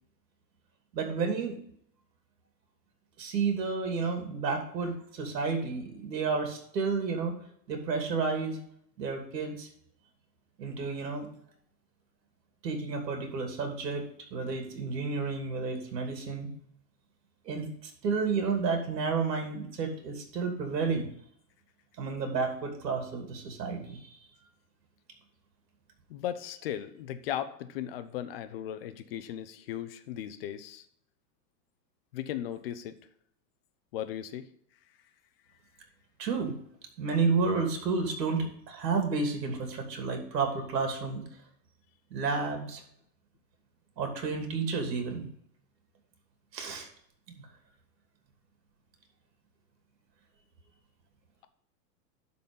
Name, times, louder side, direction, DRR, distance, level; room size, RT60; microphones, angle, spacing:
voice 1, 0.9-1.6 3.2-7.3 7.7-8.6 9.0-9.7 10.6-11.3 12.6-16.5 17.4-21.1 22.0-24.1 36.2-36.5 37.0-41.2 42.1-42.8 44.0-45.3 46.5-46.9 47.3-47.5, right 4 dB, 75° right, 4 dB, 3.0 m, -31 dB
voice 2, 26.1-30.9 32.1-33.0 33.9-34.5, left 11 dB, 35° left, 11 dB, 0.6 m, -37 dB
11.5 x 4.2 x 5.4 m, 0.67 s
supercardioid pair, 160°, 49 cm